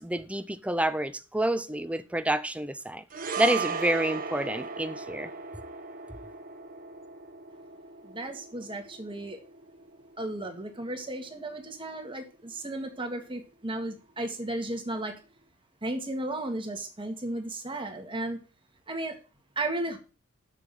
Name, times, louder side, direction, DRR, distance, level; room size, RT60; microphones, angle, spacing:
voice 1, 0.0-3.0 3.4-5.3, right 1 dB, 5° right, 0.6 m, -28 dB
sound 1, 3.1-11.6 11.8-12.0, right 5 dB, 40° right, 1.3 m, -38 dB
voice 2, 8.0-9.4 10.2-15.2 15.8-18.4 18.9-19.2 19.6-20.0, right 2 dB, 25° right, 1.9 m, -34 dB
7.2 x 6.8 x 7.6 m
head